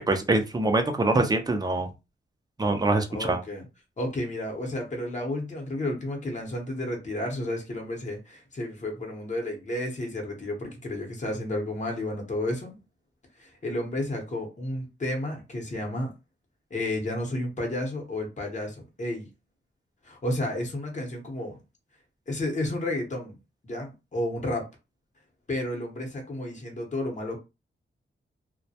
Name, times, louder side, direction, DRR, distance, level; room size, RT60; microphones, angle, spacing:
voice 1, 0.0-1.9 2.6-3.4, right 2 dB, 20° right, 0.5 m, -24 dB
voice 2, 3.1-3.7 4.0-12.7 13.4-16.1 16.7-19.3 20.0-21.6 22.3-23.3 23.6-24.7 25.5-27.4, left 1 dB, 35° left, 0.8 m, -31 dB
2.2 x 2.1 x 2.7 m
cardioid pair, 85°, 21 cm